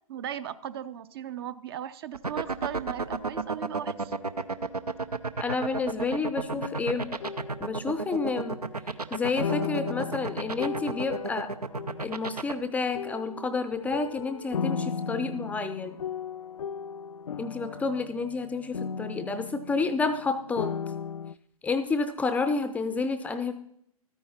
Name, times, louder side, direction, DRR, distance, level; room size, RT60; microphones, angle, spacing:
voice 1, 0.1-4.1, right 10 dB, 40° right, 15 dB, 0.5 m, -37 dB
sound 1, 2.1-12.5, right 3 dB, 85° right, 0.7 m, -31 dB
voice 2, 5.4-7.1 7.6-8.6 9.1-11.5 12.0-16.0 17.4-20.7 21.6-23.5, left 4 dB, 5° left, 11 dB, 0.5 m, -30 dB
sound 2, 6.4-8.9 9.4-12.5 12.9-20.3 20.6-21.3, left 6 dB, 70° left, 0.4 m, -36 dB
13.0 x 9.4 x 4.2 m, 0.70 s
figure-of-eight pair, 115°, 19 cm